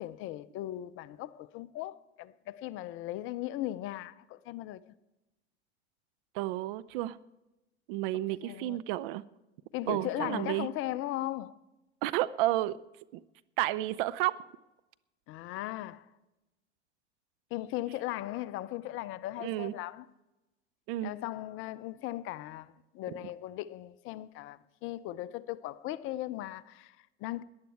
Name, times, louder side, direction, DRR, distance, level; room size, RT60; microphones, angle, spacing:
voice 1, 0.0-4.9 8.4-8.8 9.7-11.6 15.3-16.1 17.5-20.1 21.0-27.4, left 15 dB, 40° left, 0.5 m, -38 dB
voice 2, 6.3-7.2 7.9-9.2 9.9-10.7 12.0-12.8 13.1-13.2 13.6-14.4 19.4-19.7 20.9-21.1, right 16 dB, 50° right, 0.6 m, -31 dB
18.0 x 10.5 x 4.6 m
figure-of-eight pair, 80°, 34 cm